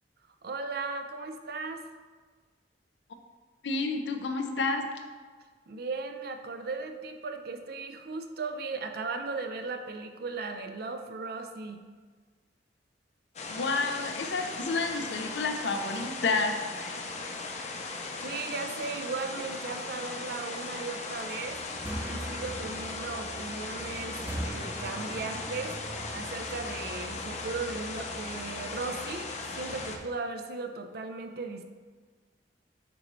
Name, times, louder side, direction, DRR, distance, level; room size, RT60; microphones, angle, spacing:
voice 1, 0.4-1.9 5.7-11.9 18.2-21.6 22.1-25.8 26.1-31.6, right 3 dB, 60° right, 6 dB, 0.5 m, -37 dB
voice 2, 3.6-4.9 13.5-17.0, left 3 dB, 90° left, 5 dB, 0.6 m, -30 dB
sound 1, 13.4-30.0, left 3 dB, 40° left, 0.6 m, -38 dB
sound 2, 21.4-30.1, right 1 dB, 10° right, 0.5 m, -42 dB
9.1 x 4.0 x 3.1 m, 1.5 s
head